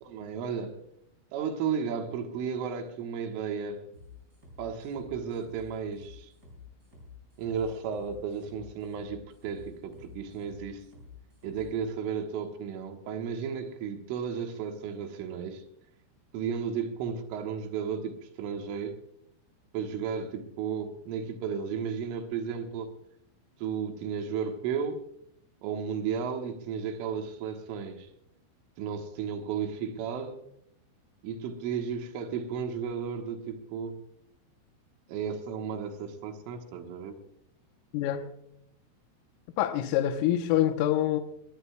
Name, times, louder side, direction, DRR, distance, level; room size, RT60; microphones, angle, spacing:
voice 1, 0.0-0.8 1.3-3.9 4.6-6.3 7.4-10.9 11.4-15.6 16.3-19.0 19.7-22.9 23.6-25.1 25.6-28.1 28.8-30.4 31.2-34.0 35.1-37.2, right 6 dB, 80° right, 3.7 m, -34 dB
sound 1, 3.9-11.7, left 4 dB, 15° right, 6.9 m, -50 dB
voice 2, 37.9-38.3 39.6-41.2, left 12 dB, 85° left, 3.4 m, -26 dB
21.5 x 19.0 x 2.3 m
omnidirectional pair, 5.8 m